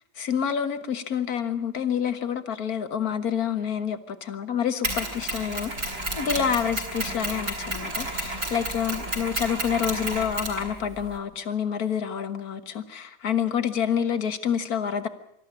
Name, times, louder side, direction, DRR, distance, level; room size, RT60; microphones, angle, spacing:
voice 1, 0.2-15.1, left 8 dB, 60° left, 1.8 m, -28 dB
Mechanisms, 4.8-11.2, right 1 dB, 65° right, 5.0 m, -31 dB
25.0 x 13.5 x 8.6 m
omnidirectional pair, 1.8 m